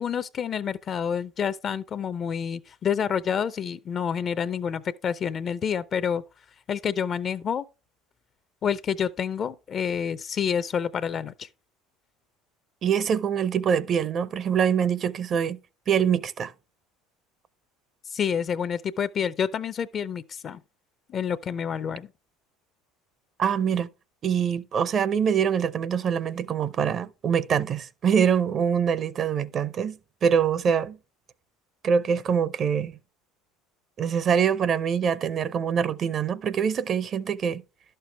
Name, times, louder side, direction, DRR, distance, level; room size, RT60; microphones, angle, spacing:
voice 1, 0.0-6.2 6.7-7.6 8.6-11.5 18.1-20.6 21.1-22.1, left 7 dB, 40° left, 0.5 m, -28 dB
voice 2, 12.8-15.6 15.9-16.5 23.4-23.9 24.2-31.0 31.8-33.0 34.0-37.6, right 7 dB, 45° right, 0.6 m, -24 dB
11.0 x 6.7 x 3.3 m
hypercardioid pair, 85°, 0 cm